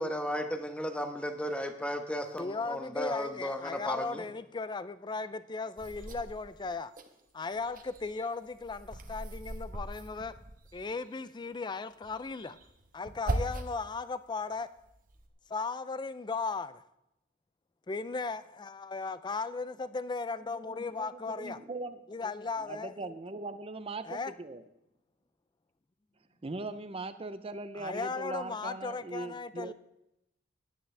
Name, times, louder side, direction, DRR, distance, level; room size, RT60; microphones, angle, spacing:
voice 1, 0.0-4.2, equal, 5° left, 1.1 m, -35 dB
voice 2, 2.4-6.9 7.3-10.3 10.7-12.6 12.9-14.7 15.5-16.8 17.9-21.6 22.1-23.1 24.0-24.3 27.8-29.7, left 4 dB, 25° left, 0.4 m, -36 dB
sound 1, 5.8-7.1 7.5-11.0 12.0-13.9 14.4-15.3, right 1 dB, 45° right, 1.2 m, -39 dB
voice 3, 21.3-22.0 22.6-24.6 26.4-29.7, right 2 dB, 30° right, 0.6 m, -40 dB
16.5 x 10.5 x 3.4 m
head